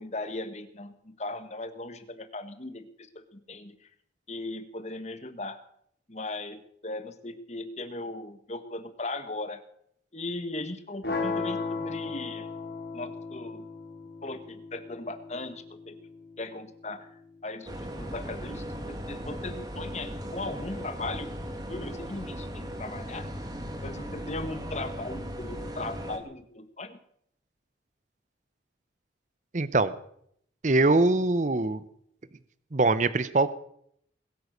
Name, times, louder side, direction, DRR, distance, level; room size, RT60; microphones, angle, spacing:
voice 1, 0.0-3.9 4.3-5.6 6.1-9.6 10.1-12.5 12.9-13.6 14.2-16.0 16.4-17.1 17.4-21.3 21.7-23.3 23.8-27.0, left 2 dB, 35° left, 10 dB, 1.5 m, -38 dB
sound 1, 11.0-17.1, left 4 dB, 60° left, 3.8 m, -36 dB
sound 2, 17.7-26.2, equal, 20° right, 2.1 m, -37 dB
voice 2, 29.5-29.9 30.6-31.8 32.7-33.5, right 2 dB, 40° right, 15 dB, 0.7 m, -23 dB
21.0 x 9.4 x 6.6 m, 0.69 s
head